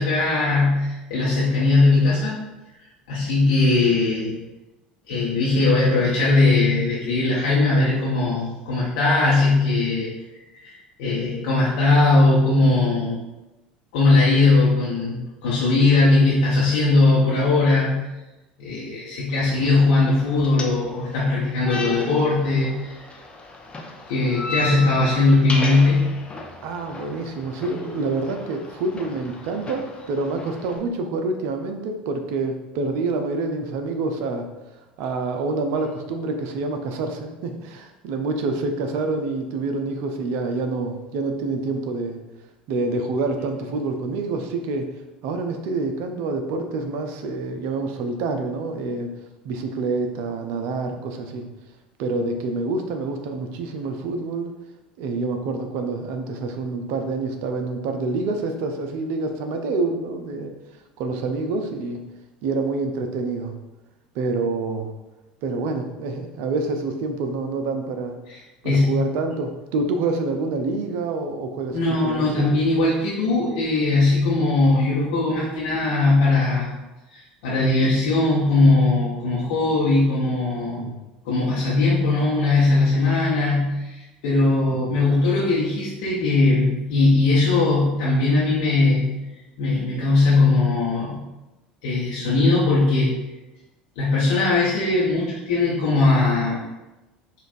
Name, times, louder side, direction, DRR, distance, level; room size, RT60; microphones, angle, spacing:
voice 1, 0.0-2.4 3.1-4.3 5.1-10.1 10.6-13.2 13.9-18.0 18.6-23.0 24.1-26.0 68.6-68.9 71.7-76.7 77.1-80.8 81.2-89.1 89.6-91.2 91.8-93.1 94.0-96.6, left 3 dB, 65° left, -7 dB, 0.8 m, -19 dB
sound 1, 19.3-30.8, left 2 dB, 20° left, 0.6 m, -35 dB
voice 2, 26.6-34.5 35.0-42.2 42.7-44.9 45.2-49.1 49.4-51.5 52.0-54.5 55.0-60.5 61.0-62.0 62.4-63.5 64.1-64.9 65.4-68.1 68.6-72.5 74.0-74.2 80.8-81.0 84.7-84.8, right 3 dB, 55° right, 5 dB, 0.5 m, -27 dB
5.0 x 2.4 x 2.6 m, 1.0 s
figure-of-eight pair, 70°, 5 cm